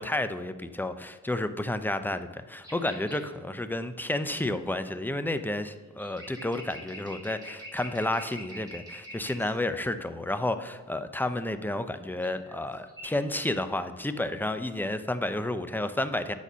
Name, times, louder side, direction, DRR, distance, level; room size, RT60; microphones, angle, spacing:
voice 1, 0.0-16.3, left 1 dB, 5° left, 10 dB, 0.6 m, -31 dB
sound 1, 2.6-3.2 5.9-9.5 12.1-12.6 12.9-13.2, equal, 10° right, 2.8 m, -45 dB
8.1 x 4.2 x 6.1 m, 1.3 s
cardioid pair, 50°, 33 cm